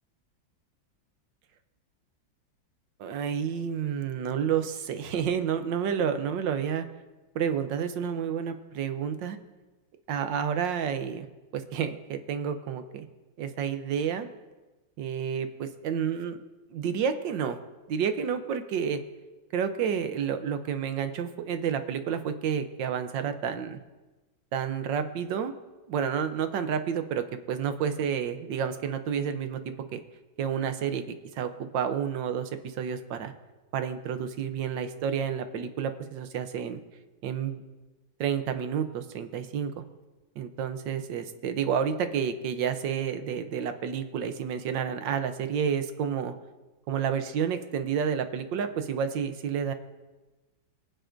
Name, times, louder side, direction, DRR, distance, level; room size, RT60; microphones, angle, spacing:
voice 1, 3.0-6.8 7.3-9.4 10.1-11.3 11.5-13.1 13.4-14.3 15.0-16.4 16.7-17.6 17.9-19.0 19.5-23.8 24.5-25.5 25.9-30.0 30.4-33.3 33.7-36.8 37.2-37.6 38.2-39.8 40.4-46.3 46.9-49.7, right 7 dB, 75° right, 9 dB, 1.4 m, -30 dB
22.5 x 9.0 x 2.6 m, 1.2 s
omnidirectional pair, 2.1 m